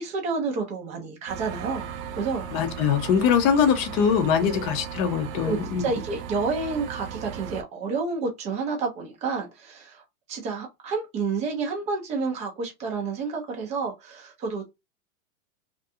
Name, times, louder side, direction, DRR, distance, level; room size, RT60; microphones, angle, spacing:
voice 1, 0.0-1.9 2.2-2.4 4.4-4.6 5.4-10.0 10.3-14.7, right 4 dB, 15° right, 0.4 m, -29 dB
sound 1, 1.3-7.6, right 8 dB, 65° right, 0.6 m, -37 dB
voice 2, 2.5-5.9, left 7 dB, 35° left, 0.6 m, -22 dB
2.5 x 2.2 x 2.6 m
supercardioid pair, 145°, 43 cm